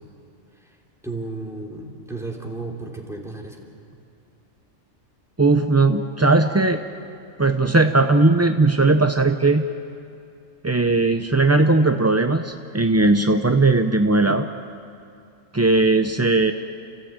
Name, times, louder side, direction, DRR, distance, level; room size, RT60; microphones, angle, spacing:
voice 1, 1.0-3.6, right 3 dB, ahead, -1 dB, 3.1 m, -33 dB
voice 2, 5.4-6.8 7.4-9.6 10.6-14.5 15.5-16.5, right 3 dB, 20° right, 6 dB, 0.4 m, -18 dB
29.5 x 15.5 x 8.8 m, 2.6 s
omnidirectional pair, 1.4 m